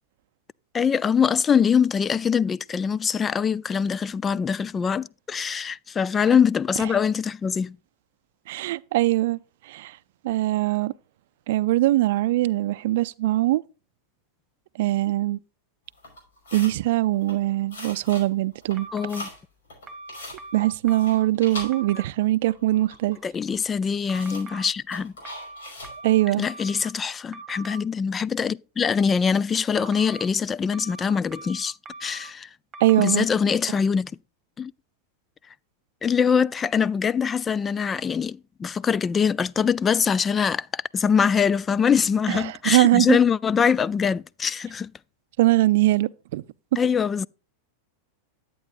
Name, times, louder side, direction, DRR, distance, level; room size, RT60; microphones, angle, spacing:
voice 1, 0.7-7.8 18.9-19.3 23.2-25.1 26.4-31.8 32.0-32.5 33.0-34.1 34.6-34.7 36.0-44.9 46.8-47.3, left 6 dB, 20° left, 0.3 m, -23 dB
voice 2, 8.5-9.4 9.6-10.0 10.2-10.9 11.5-13.6 14.8-15.4 16.5-18.9 20.5-23.2 26.0-26.5 32.8-33.3 42.3-43.2 45.4-46.4, right 16 dB, 65° right, 0.4 m, -22 dB
sound 1, 16.0-16.8 17.1-17.4 17.7-18.3 18.5-19.4 19.7-20.4 20.8-22.2 22.5-23.2 23.5-23.6 24.1-24.5 24.9-26.0, left 2 dB, 80° left, 5.3 m, -40 dB
sound 2, 18.8-19.3 19.9-21.2 21.6-22.0 24.1-24.6 25.2-26.9 27.3-27.8 29.8-30.2 30.7-32.3 32.7-33.2, right 2 dB, 30° right, 1.2 m, -41 dB
11.0 x 8.5 x 2.5 m
hypercardioid pair, 105°, 0 cm